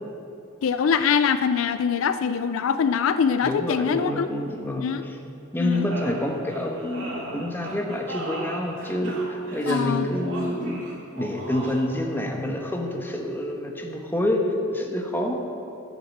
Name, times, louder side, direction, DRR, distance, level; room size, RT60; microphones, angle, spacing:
voice 1, 0.6-4.3 4.8-5.1 5.6-5.9 9.7-10.1, left 6 dB, 70° left, 12 dB, 0.4 m, -23 dB
voice 2, 3.4-5.2 5.5-10.8 11.1-14.4 14.7-15.3, left 1 dB, 10° left, 1 dB, 1.2 m, -27 dB
sound 1, 5.7-12.0, right 1 dB, 65° right, 2.4 m, -37 dB
12.0 x 7.5 x 7.3 m, 2.7 s
head